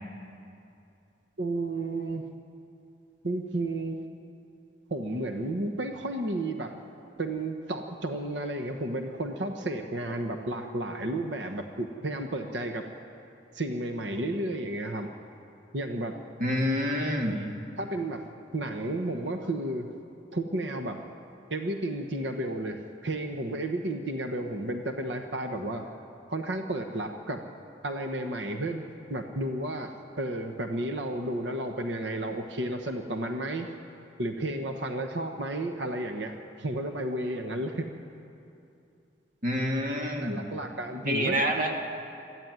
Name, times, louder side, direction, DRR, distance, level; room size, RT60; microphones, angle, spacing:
voice 1, 1.4-2.2 3.2-4.0 4.9-6.8 7.2-12.8 13.5-15.1 15.7-16.2 17.3-17.5 17.8-18.3 18.5-19.9 20.3-21.0 21.5-25.9 26.3-27.4 27.8-28.8 29.1-33.7 34.2-37.9 40.2-41.8, right 1 dB, 85° right, 5 dB, 1.2 m, -32 dB
voice 2, 16.4-17.4 39.4-40.4 41.0-41.7, equal, 50° right, 1 dB, 2.3 m, -27 dB
23.5 x 14.0 x 9.5 m, 2.7 s
head